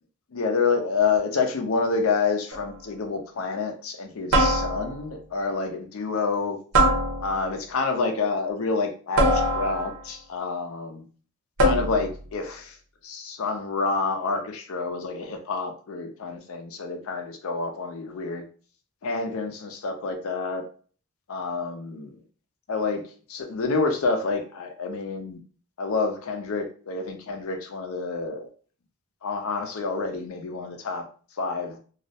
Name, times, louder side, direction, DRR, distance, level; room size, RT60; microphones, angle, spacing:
voice 1, 0.3-6.6 7.2-11.0 11.6-12.8 13.0-18.4 19.0-20.6 21.3-22.1 22.7-25.4 25.8-28.5 29.2-31.0 31.4-31.8, left 4 dB, 65° left, 5 dB, 0.5 m, -28 dB
sound 1, 2.5-2.9 4.3-5.1 6.7-7.6 9.2-10.1 11.6-12.2, right 1 dB, 75° right, 0.6 m, -22 dB
2.3 x 2.0 x 2.7 m, 0.41 s
head